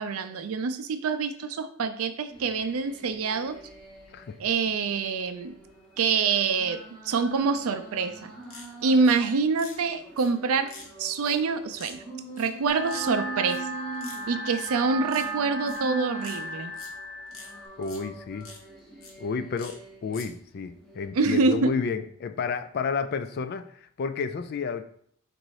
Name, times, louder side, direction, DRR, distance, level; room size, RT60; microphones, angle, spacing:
voice 1, 0.0-3.6 4.4-5.5 6.0-8.3 8.8-10.7 11.0-12.0 12.4-13.7 14.3-16.7 21.1-21.7, right 4 dB, 80° right, 10 dB, 0.4 m, -26 dB
sound 1, 2.3-4.4 4.8-9.4 9.8-16.8 17.3-20.2 20.7-21.0, right 3 dB, 5° left, 1.0 m, -44 dB
sound 2, 8.4-9.2 9.6-9.8 10.2-10.3 10.7-10.9 11.2-11.3 11.7-11.9 12.4-12.6 12.9-13.0 13.5-13.6 13.9-14.2 14.6-14.7 15.0-15.3 15.7-15.8 16.2-16.9 17.3-17.5 17.8-18.0 18.4-18.6 19.0-19.1 19.6-19.7 20.1-20.3, left 4 dB, 70° left, 1.2 m, -45 dB
sound 3, 12.7-17.7, right 2 dB, 45° right, 0.7 m, -35 dB
voice 2, 17.8-18.5 19.2-24.8, left 5 dB, 45° left, 10 dB, 0.3 m, -31 dB
4.0 x 2.6 x 4.6 m, 0.64 s
head